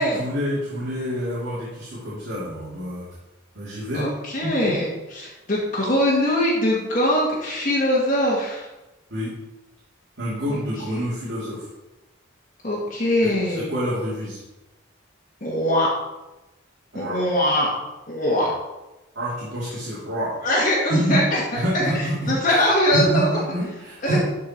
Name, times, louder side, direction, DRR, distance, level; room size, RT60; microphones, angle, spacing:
voice 1, 0.0-3.1 3.5-4.0 4.4-4.5 9.1-9.3 10.2-11.7 13.5-14.4 16.9-17.2 18.4-18.5 19.1-20.4 20.9-21.2 21.5-22.5 22.9-24.2, equal, 55° right, -8 dB, 2.9 m, -27 dB
voice 2, 3.9-8.7 10.5-10.6 10.9-11.0 12.6-13.7 15.4-15.9 16.9-17.7 18.1-18.5 20.4-23.4 24.0-24.2, left 1 dB, 40° left, -5 dB, 1.6 m, -22 dB
12.5 x 4.7 x 4.5 m, 1.0 s
head